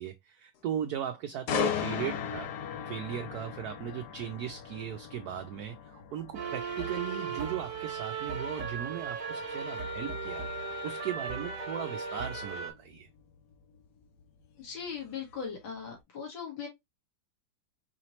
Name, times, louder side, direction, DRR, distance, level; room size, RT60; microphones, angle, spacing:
voice 1, 0.0-2.5 2.9-13.1, right 10 dB, 70° right, 0.9 m, -37 dB
sound 1, 1.5-15.3 15.7-16.0, left 9 dB, 65° left, 1.1 m, -39 dB
sound 2, 6.3-12.7, right 4 dB, 55° right, 1.3 m, -36 dB
voice 2, 14.6-16.7, left 6 dB, 85° left, 2.4 m, -39 dB
4.8 x 3.0 x 2.9 m
omnidirectional pair, 2.0 m